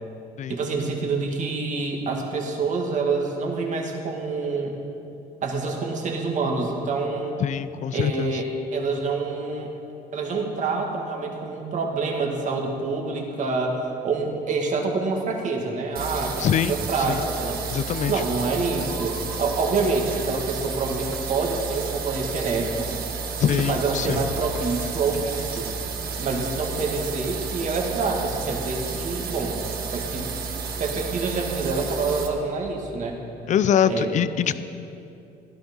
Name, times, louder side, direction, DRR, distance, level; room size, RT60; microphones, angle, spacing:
voice 1, 0.5-4.8 5.4-7.4 7.9-9.7 10.1-13.8 14.0-17.6 18.1-22.9 23.5-25.7 26.2-30.3 30.8-33.2 33.9-34.1 34.4-34.6, right 4 dB, 45° right, 1 dB, 2.3 m, -27 dB
voice 2, 7.4-8.4 16.4-17.2 17.7-18.1 23.4-24.2 33.5-34.6, left 9 dB, 45° left, 14 dB, 0.5 m, -23 dB
sound 1, 16.0-32.3, right 5 dB, 60° right, 1.8 m, -32 dB
sound 2, 16.7-21.2, left 4 dB, 80° left, 2.1 m, -41 dB
sound 3, 19.5-26.3, right 1 dB, 15° right, 2.2 m, -42 dB
15.5 x 12.0 x 5.5 m, 2.8 s
cardioid pair, 110°, 17 cm